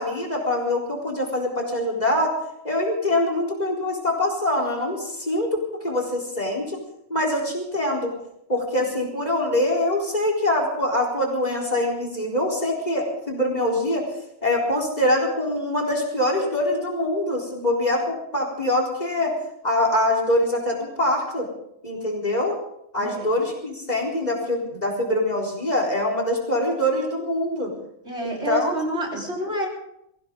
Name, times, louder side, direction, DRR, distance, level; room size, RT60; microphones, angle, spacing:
voice 1, 0.0-2.3 2.6-6.8 7.1-8.1 8.5-14.0 14.4-19.3 19.6-21.5 21.8-22.6 22.9-27.7 28.2-29.2, left 1 dB, 35° left, 1 dB, 4.2 m, -24 dB
voice 2, 28.0-29.7, right 1 dB, 65° right, -2 dB, 4.4 m, -28 dB
23.0 x 16.0 x 3.8 m, 0.76 s
omnidirectional pair, 1.2 m